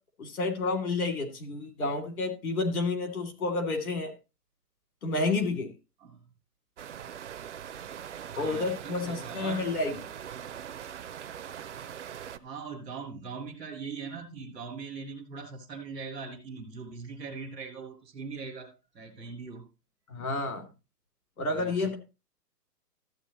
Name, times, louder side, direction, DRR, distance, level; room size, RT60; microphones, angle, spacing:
voice 1, 0.2-4.1 5.0-5.7 8.4-9.9 20.1-20.7 21.4-21.9, left 3 dB, 60° left, 5 dB, 2.8 m, -30 dB
sound 1, 6.8-12.4, right 9 dB, 50° right, 0.6 m, -42 dB
voice 2, 8.3-9.8 12.3-19.7 21.5-21.9, right 5 dB, ahead, -9 dB, 0.6 m, -41 dB
13.5 x 8.5 x 3.0 m, 0.29 s
hypercardioid pair, 170°, 48 cm